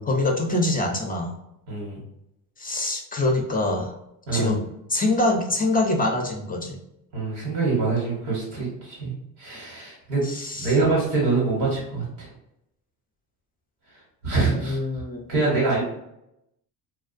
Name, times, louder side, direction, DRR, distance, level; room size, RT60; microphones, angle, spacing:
voice 1, 0.1-1.3 2.6-3.9 4.3-4.6 4.9-6.8 10.2-10.7 14.4-15.3, left 2 dB, 20° left, 1 dB, 0.4 m, -24 dB
voice 2, 1.7-2.0 4.3-4.5 7.1-9.1 9.4-10.2 10.6-12.3 14.2-14.8 15.3-15.8, right 3 dB, 85° right, -5 dB, 1.2 m, -24 dB
2.4 x 2.2 x 2.4 m, 0.83 s
supercardioid pair, 70°, 46 cm